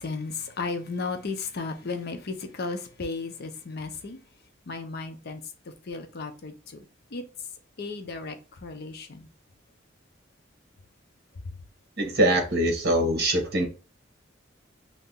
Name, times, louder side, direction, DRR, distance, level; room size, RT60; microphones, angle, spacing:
voice 1, 0.0-4.2 4.7-7.5 7.8-9.3 11.3-11.6, left 4 dB, 55° left, 0.6 m, -35 dB
voice 2, 12.0-13.7, right 1 dB, 55° right, 1.1 m, -23 dB
2.7 x 2.6 x 3.6 m
head